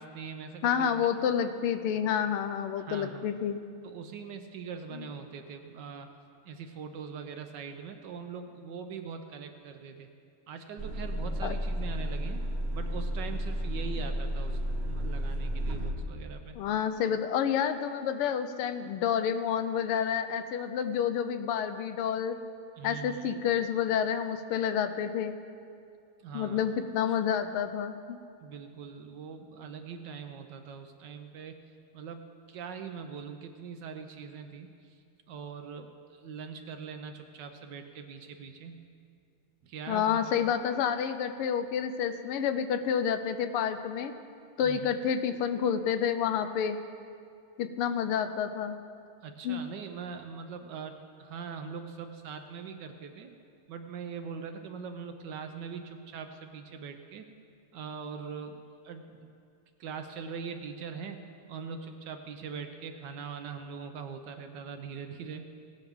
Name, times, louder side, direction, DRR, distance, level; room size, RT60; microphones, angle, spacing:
voice 1, 0.0-0.9 2.8-3.3 3.8-6.1 6.4-10.1 10.5-12.4 12.7-14.6 14.8-16.5 22.8-23.3 26.2-26.7 28.4-31.6 31.9-35.0 35.3-38.9 39.6-40.2 44.6-45.0 49.2-53.3 53.7-57.3 57.7-58.6 58.8-59.3 59.8-61.2 61.5-65.6, right 6 dB, 70° right, 6 dB, 1.1 m, -42 dB
voice 2, 0.6-3.6 4.9-5.1 11.4-11.5 16.5-22.4 22.8-25.3 26.3-28.2 39.9-44.1 44.6-46.8 47.6-48.8 49.4-49.6, left 8 dB, 85° left, 9 dB, 1.6 m, -29 dB
sound 1, 10.8-15.9, equal, 50° right, 0.7 m, -32 dB
17.5 x 9.2 x 3.6 m, 2.4 s
omnidirectional pair, 2.4 m